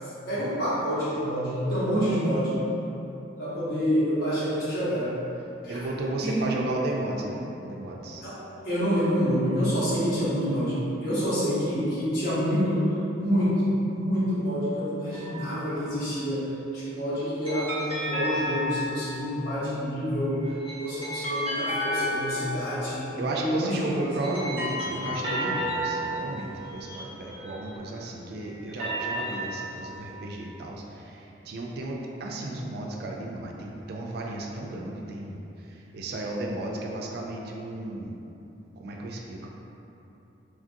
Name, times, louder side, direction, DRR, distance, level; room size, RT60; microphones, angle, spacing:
voice 1, 0.3-2.5 3.4-5.1 5.6-5.9 6.2-6.4 8.2-8.4 8.6-12.9 13.2-16.5 16.7-24.1, equal, 55° left, -11 dB, 1.1 m, -27 dB
voice 2, 5.7-8.2 23.2-38.1 38.8-39.5, right 2 dB, 55° right, 0 dB, 0.3 m, -34 dB
sound 1, 15.1-15.9 17.4-19.4 20.3-23.1 23.9-28.0 28.5-30.1, equal, 30° right, 0.7 m, -33 dB
3.1 x 2.5 x 2.5 m, 3.0 s
head